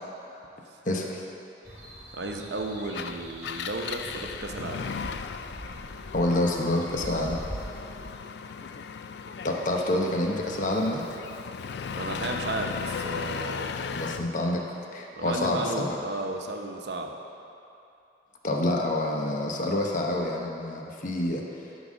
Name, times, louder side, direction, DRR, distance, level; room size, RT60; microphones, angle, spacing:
voice 1, 0.8-1.2 6.1-7.4 9.4-11.1 13.9-14.7 14.9-15.9 18.4-21.4, left 1 dB, 45° left, 0 dB, 0.9 m, -27 dB
sound 1, 1.6-8.2, right 1 dB, 15° right, 2.1 m, -43 dB
voice 2, 2.1-4.9 11.9-13.7 15.1-17.2, right 2 dB, 65° right, 2 dB, 0.8 m, -34 dB
Engine, 2.8-14.3, left 6 dB, 60° left, 0.3 m, -37 dB
12.0 x 4.0 x 6.2 m, 2.7 s
head